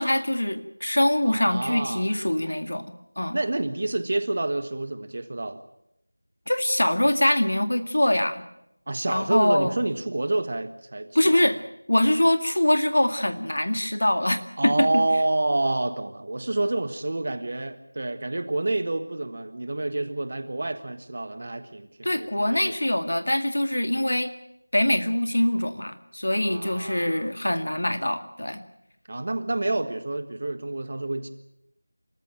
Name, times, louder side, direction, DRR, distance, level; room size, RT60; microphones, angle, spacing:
voice 1, 0.0-2.9 3.2-3.4 6.5-8.4 9.1-9.7 11.2-11.6 11.9-15.0 22.0-24.3 24.7-28.6, left 1 dB, 65° left, 8 dB, 2.1 m, -23 dB
voice 2, 1.2-2.1 3.3-5.6 8.9-11.5 14.6-22.8 26.3-27.3 29.1-31.3, right 2 dB, 35° right, 10 dB, 1.5 m, -28 dB
26.5 x 14.0 x 9.0 m, 0.83 s
figure-of-eight pair, 170°, 0 cm